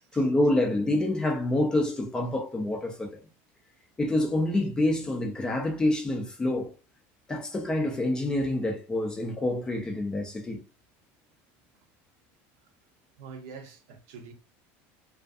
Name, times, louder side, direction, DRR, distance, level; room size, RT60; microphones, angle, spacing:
voice 1, 0.1-3.2 4.0-6.7 7.3-10.6, left 1 dB, 10° left, 0.4 m, -27 dB
voice 2, 13.2-14.3, right 5 dB, 65° right, 0.6 m, -45 dB
2.4 x 2.4 x 2.4 m
cardioid pair, 160°, 7 cm